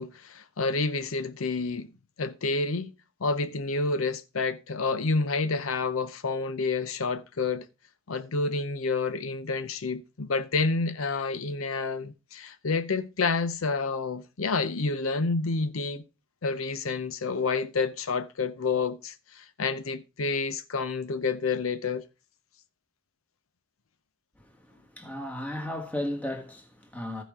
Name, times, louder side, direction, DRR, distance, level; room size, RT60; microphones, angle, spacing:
voice 1, 0.0-1.9 2.2-2.9 3.2-7.7 8.1-16.0 16.4-22.0, left 4 dB, 80° left, 0.7 m, -29 dB
voice 2, 24.4-27.2, left 1 dB, 5° left, 1.5 m, -35 dB
15.5 x 5.1 x 3.6 m
head